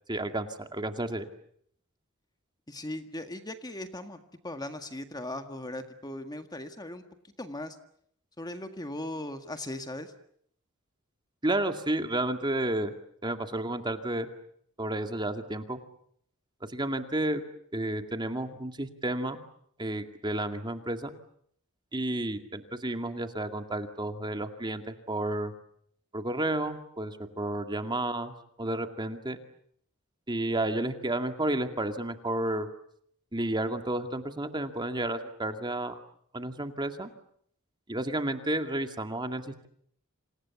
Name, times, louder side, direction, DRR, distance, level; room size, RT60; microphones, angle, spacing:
voice 1, 0.1-1.3 11.4-12.9 13.2-14.3 14.8-15.8 16.7-17.4 17.7-19.4 19.8-21.1 21.9-25.5 26.1-29.4 30.3-32.7 33.3-35.9 36.3-37.1 37.9-39.7, right 1 dB, 20° right, 7 dB, 2.2 m, -31 dB
voice 2, 2.7-7.0 7.4-7.8 8.4-10.1, left 1 dB, 20° left, 7 dB, 1.8 m, -38 dB
29.5 x 27.5 x 7.1 m, 0.68 s
head